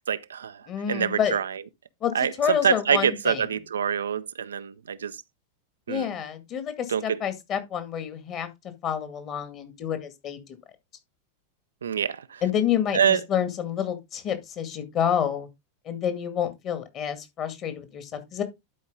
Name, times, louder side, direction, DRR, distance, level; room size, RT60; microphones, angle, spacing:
voice 1, 0.1-1.6 2.1-5.2 5.9-6.2 6.9-7.2 11.8-12.4 12.9-13.2, right 8 dB, 70° right, 0.5 m, -26 dB
voice 2, 0.7-1.4 2.0-3.4 5.9-8.5 8.8-10.4 12.4-15.5 15.9-18.4, left 9 dB, 35° left, 2.0 m, -28 dB
11.5 x 4.8 x 3.7 m
figure-of-eight pair, 90°, 0 cm